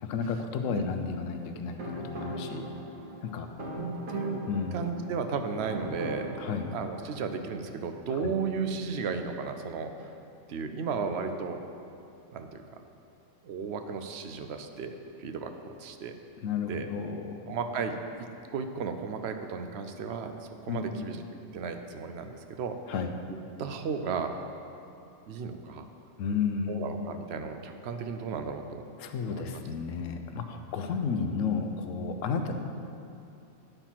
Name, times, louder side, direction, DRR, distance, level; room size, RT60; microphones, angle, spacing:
voice 1, 0.0-2.7 3.2-3.5 4.5-4.8 6.4-6.7 8.2-8.3 16.4-17.3 20.7-21.0 22.9-23.1 26.2-26.9 29.0-32.5, left 5 dB, 85° left, 6 dB, 1.0 m, -32 dB
sound 1, 1.4-7.2, equal, 85° right, 1.6 m, -40 dB
voice 2, 3.6-4.4 4.7-6.3 6.7-9.9 10.5-11.6 12.3-12.6 13.4-16.1 16.6-16.9 17.5-21.2 21.5-22.8 23.3-24.4 25.3-25.9 26.7-28.8 29.3-29.6, right 5 dB, 65° right, 7 dB, 0.8 m, -34 dB
9.1 x 4.5 x 5.7 m, 2.6 s
omnidirectional pair, 1.3 m